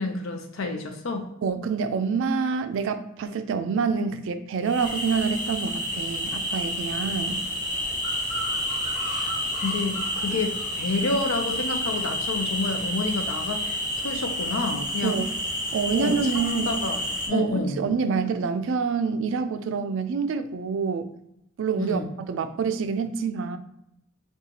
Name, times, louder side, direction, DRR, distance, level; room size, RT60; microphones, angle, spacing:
voice 1, 0.0-1.3 6.8-6.9 9.1-13.6 14.0-15.2 15.9-17.8 21.8-22.1, left 3 dB, 80° left, 5 dB, 0.6 m, -29 dB
voice 2, 1.4-7.4 15.0-15.4 15.7-16.8 17.3-21.1 21.6-23.6, right 5 dB, 65° right, 9 dB, 0.3 m, -27 dB
sound 1, 4.6-17.3, equal, 40° left, 1.2 m, -29 dB
2.8 x 2.3 x 3.8 m, 0.78 s
head